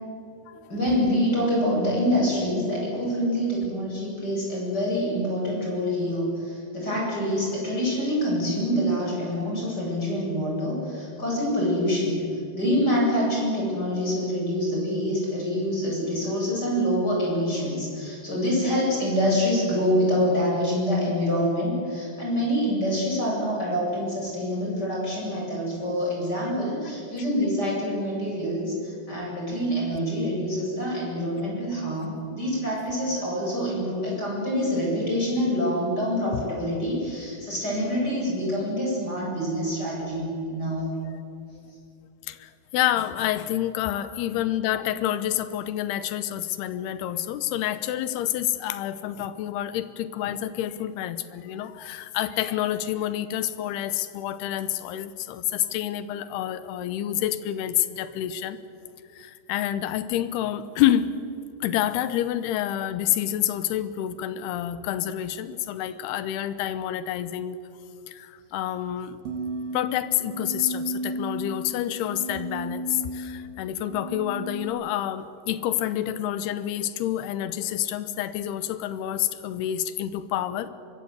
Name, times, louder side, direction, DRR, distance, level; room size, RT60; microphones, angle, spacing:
voice 1, 0.7-12.2 12.5-40.9 43.9-44.0, equal, 25° left, -3 dB, 8.3 m, -26 dB
voice 2, 42.3-58.6 59.1-61.2 61.6-67.6 68.1-69.2 69.7-80.7, left 12 dB, 80° left, 13 dB, 2.9 m, -28 dB
sound 1, 69.3-74.7, right 1 dB, 65° right, 4.8 m, -34 dB
24.0 x 22.0 x 8.1 m, 2.5 s
omnidirectional pair, 4.8 m